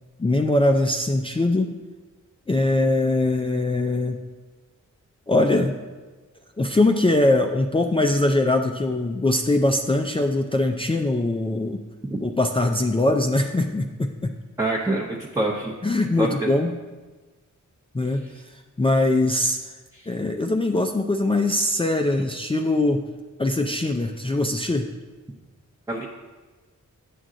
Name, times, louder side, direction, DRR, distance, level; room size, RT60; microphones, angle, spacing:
voice 1, 0.2-1.7 2.5-4.2 5.3-5.7 6.6-11.8 12.2-14.3 15.8-16.7 17.9-18.3 18.8-19.6 20.1-23.0 23.4-24.9, left 2 dB, 20° left, 3 dB, 0.4 m, -22 dB
voice 2, 14.6-15.7 16.2-16.5 19.9-20.1 25.9-26.1, right 2 dB, 10° right, -1 dB, 0.7 m, -25 dB
9.2 x 6.2 x 3.8 m, 1.3 s
wide cardioid pair, 80°, 31 cm